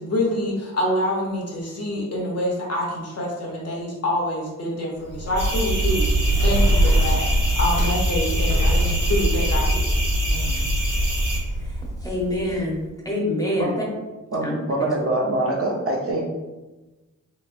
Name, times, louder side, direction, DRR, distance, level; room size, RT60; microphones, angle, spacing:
voice 1, 0.0-7.3 7.6-10.0 10.3-10.6, left 1 dB, 50° left, -3 dB, 0.9 m, -26 dB
Bird, 5.0-12.8, right 1 dB, 70° left, 1.4 m, -24 dB
sound 1, 5.4-11.4, equal, 70° right, 1.2 m, -24 dB
voice 2, 11.6-13.7 14.4-14.6, left 1 dB, 10° left, -3 dB, 0.9 m, -26 dB
voice 3, 14.3-16.2, right 1 dB, 45° right, -3 dB, 0.8 m, -24 dB
3.1 x 3.0 x 2.5 m, 1.1 s
wide cardioid pair, 95°, 32 cm